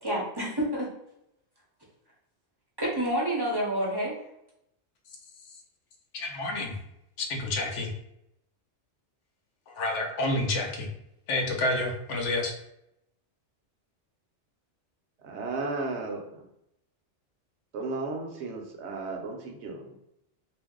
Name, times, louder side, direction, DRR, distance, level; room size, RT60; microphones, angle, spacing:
voice 1, 0.0-0.9 2.8-4.2, right 1 dB, 30° right, -4 dB, 0.5 m, -28 dB
voice 2, 6.1-6.8 7.2-7.9 9.7-10.9 11.3-12.5, left 2 dB, 85° left, 2 dB, 1.0 m, -29 dB
voice 3, 15.2-16.4 17.7-20.0, right 3 dB, 75° right, 2 dB, 0.9 m, -34 dB
2.6 x 2.0 x 3.6 m, 0.81 s
omnidirectional pair, 1.2 m